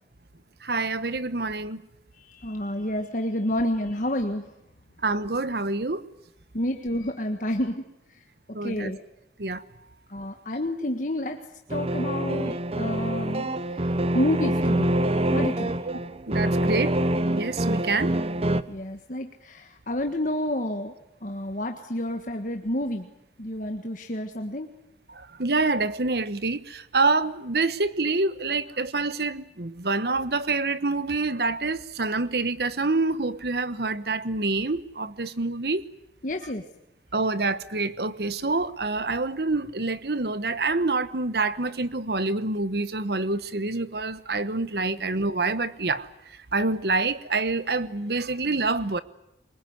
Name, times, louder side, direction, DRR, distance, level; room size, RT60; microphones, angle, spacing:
voice 1, 0.6-1.8 5.0-6.1 8.5-8.9 9.4-9.6 15.9-16.0 16.3-17.0 17.3-18.1 25.1-35.8 37.1-49.0, right 3 dB, 65° right, 1.1 m, -27 dB
voice 2, 2.2-4.5 6.5-8.2 8.6-9.0 10.1-11.4 11.7-15.7 18.7-20.9 21.2-23.1 23.4-24.7 36.2-36.6, left 1 dB, 45° left, 1.6 m, -30 dB
sound 1, 11.7-18.6, right 1 dB, 35° right, 0.9 m, -25 dB
24.0 x 21.5 x 9.5 m
head